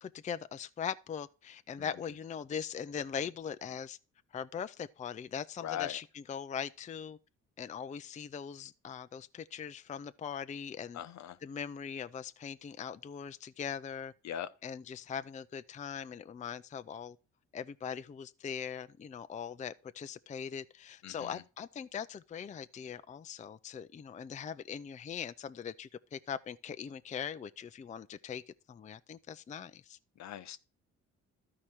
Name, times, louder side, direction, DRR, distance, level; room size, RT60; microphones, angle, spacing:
voice 1, 0.0-4.0 4.3-7.2 7.6-11.0 11.4-14.1 14.6-17.2 17.5-28.4 28.7-30.0, left 7 dB, 25° left, 0.4 m, -41 dB
voice 2, 5.6-6.0 10.9-11.4 14.2-14.5 21.0-21.4 30.2-30.6, left 11 dB, 65° left, 0.8 m, -40 dB
13.0 x 4.9 x 4.3 m
cardioid pair, 90°, 30 cm